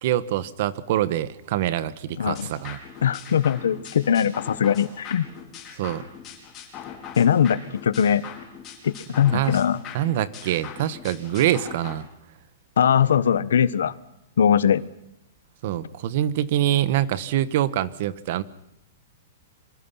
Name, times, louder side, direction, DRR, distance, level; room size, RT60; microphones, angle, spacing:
voice 1, 0.0-2.8 5.7-6.0 9.3-9.6 9.9-12.0 15.6-18.4, right 12 dB, 45° right, 16 dB, 1.4 m, -25 dB
voice 2, 2.2-2.5 3.0-5.3 7.2-8.2 8.8-9.8 12.8-13.9 14.4-14.8, left 8 dB, 85° left, 16 dB, 1.3 m, -21 dB
sound 1, 2.3-11.9, left 8 dB, 20° left, 5.2 m, -41 dB
27.5 x 25.0 x 5.8 m, 0.82 s
hypercardioid pair, 165°, 0 cm